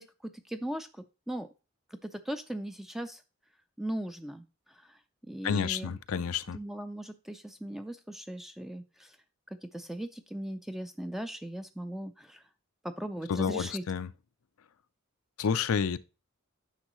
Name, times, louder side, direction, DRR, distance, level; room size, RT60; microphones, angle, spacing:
voice 1, 0.0-1.5 2.0-3.2 3.8-5.0 5.3-6.3 6.5-9.2 9.6-12.4 12.8-13.8, right 1 dB, ahead, 0.4 m, -38 dB
voice 2, 5.4-6.6 13.3-14.1 15.4-16.0, left 6 dB, 90° left, 0.5 m, -30 dB
9.8 x 6.3 x 3.1 m
head